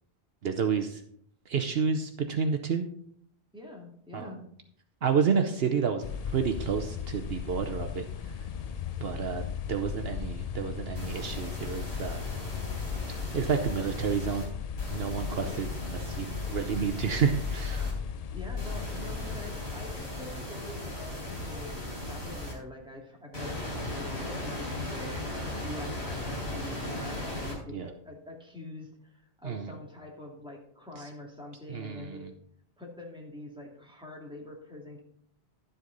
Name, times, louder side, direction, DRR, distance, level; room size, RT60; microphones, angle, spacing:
voice 1, 0.4-1.0 1.5-2.9 4.1-4.3 5.0-6.0 6.3-8.0 9.0-9.4 9.7-12.3 13.1-14.5 14.9-17.9 27.7-27.9 29.4-29.7 31.7-32.2, right 6 dB, 65° right, 5 dB, 1.0 m, -30 dB
voice 2, 3.5-4.4 15.3-15.6 18.3-25.1 25.5-32.3 32.8-35.0, left 1 dB, 5° right, -2 dB, 2.3 m, -45 dB
sound 1, 6.0-20.3, left 7 dB, 50° left, 0.5 m, -36 dB
sound 2, 11.0-14.4 14.8-17.9 18.6-22.5 23.3-27.6, left 1 dB, 70° left, 4.0 m, -38 dB
11.5 x 8.0 x 3.9 m, 0.65 s
omnidirectional pair, 1.1 m